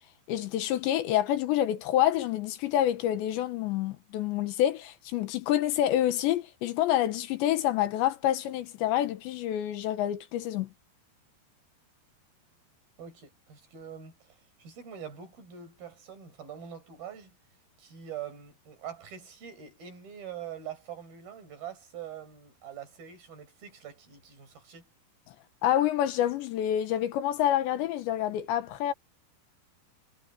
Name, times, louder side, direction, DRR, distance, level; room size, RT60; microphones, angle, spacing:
voice 1, 0.3-10.7 25.6-28.9, left 12 dB, 80° left, 3.5 m, -27 dB
voice 2, 13.0-17.4 17.8-24.9, right 9 dB, 55° right, 7.6 m, -44 dB
omnidirectional pair, 5.2 m